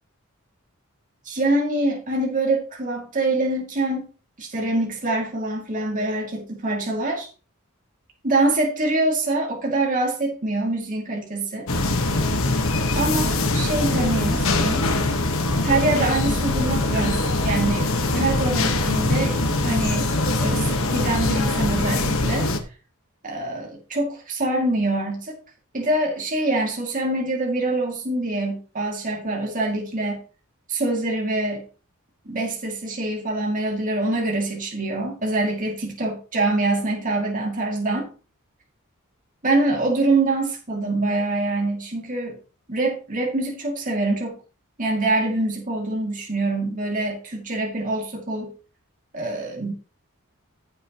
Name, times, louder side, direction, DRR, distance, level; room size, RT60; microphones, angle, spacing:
voice 1, 1.2-4.1 4.4-7.3 8.2-11.7 13.0-14.9 15.6-20.1 20.4-22.5 23.2-25.3 25.7-30.2 30.7-31.6 32.3-38.1 39.4-42.4 42.7-44.4 44.8-48.5 49.1-49.7, right 2 dB, 40° right, -1 dB, 2.5 m, -25 dB
sound 1, 11.7-22.6, left 2 dB, 65° left, 1.5 m, -22 dB
14.5 x 7.2 x 3.1 m, 0.35 s
head